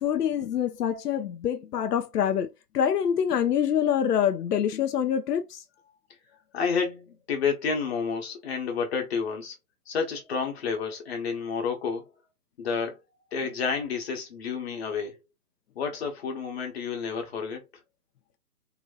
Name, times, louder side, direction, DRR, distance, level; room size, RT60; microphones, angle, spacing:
voice 1, 0.0-2.5 2.7-5.6, left 9 dB, 85° left, 0.6 m, -25 dB
voice 2, 6.5-9.5 9.9-12.0 12.6-13.0 13.3-15.1 15.8-17.6, left 5 dB, 40° left, 1.1 m, -30 dB
2.9 x 2.7 x 2.3 m
hypercardioid pair, 160°, 46 cm